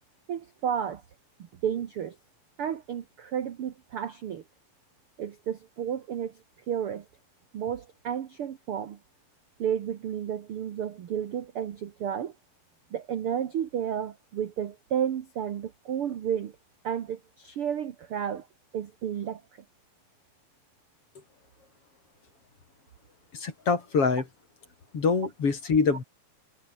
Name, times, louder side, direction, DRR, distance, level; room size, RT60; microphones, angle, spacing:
voice 1, 0.3-1.0 1.4-2.2 2.6-4.4 5.2-7.0 7.5-9.0 9.6-12.3 12.9-16.5 16.8-18.5 18.7-19.4, right 9 dB, 65° right, 1.3 m, -32 dB
voice 2, 23.3-24.2 24.9-26.0, left 5 dB, 40° left, 3.9 m, -25 dB
omnidirectional pair, 4.3 m